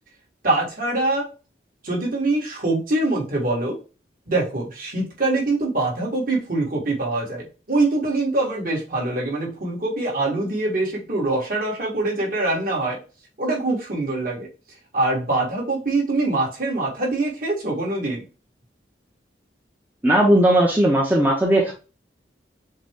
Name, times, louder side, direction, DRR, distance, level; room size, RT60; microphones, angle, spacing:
voice 1, 0.4-1.3 1.8-3.8 4.3-13.0 13.4-14.5 14.9-18.2, right 2 dB, 50° right, -2 dB, 1.8 m, -24 dB
voice 2, 20.0-21.7, right 1 dB, 10° right, -2 dB, 0.7 m, -17 dB
6.4 x 2.2 x 3.7 m, 0.33 s
head